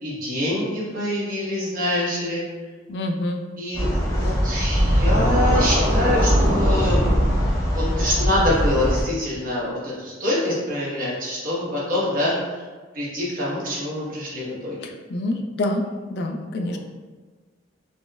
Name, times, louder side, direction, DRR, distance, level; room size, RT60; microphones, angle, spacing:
voice 1, 0.0-2.4 3.6-7.4 7.7-12.6 12.9-14.8 16.5-16.8, left 1 dB, 45° right, -7 dB, 1.0 m, -25 dB
voice 2, 2.9-3.4 14.8-15.8 16.1-16.8, left 1 dB, 60° left, 4 dB, 0.3 m, -26 dB
sound 1, 3.7-9.0, equal, 20° left, 0.6 m, -21 dB
Scratching (performance technique), 4.8-7.3, right 1 dB, 25° right, 1.5 m, -23 dB
4.0 x 2.0 x 2.3 m, 1.4 s
head